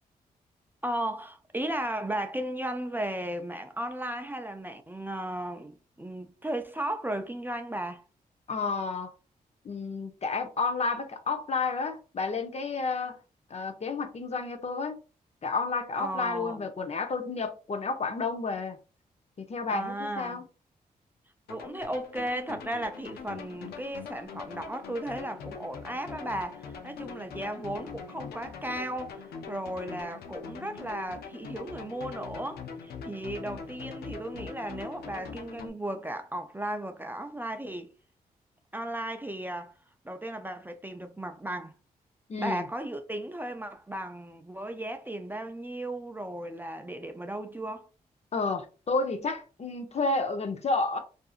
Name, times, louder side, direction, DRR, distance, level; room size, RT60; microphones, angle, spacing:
voice 1, 0.8-8.0 16.0-16.7 19.7-20.4 21.5-37.9 38.7-39.7 40.0-41.7 42.4-47.9, right 1 dB, 10° right, 0.4 m, -35 dB
voice 2, 8.5-9.1 9.6-13.2 13.5-15.0 15.4-18.8 19.4-20.4 42.3-42.7 48.3-51.0, left 4 dB, 45° left, 0.7 m, -31 dB
sound 1, 21.5-35.7, left 5 dB, 85° left, 0.5 m, -42 dB
2.7 x 2.5 x 2.4 m
cardioid pair, 60°, 16 cm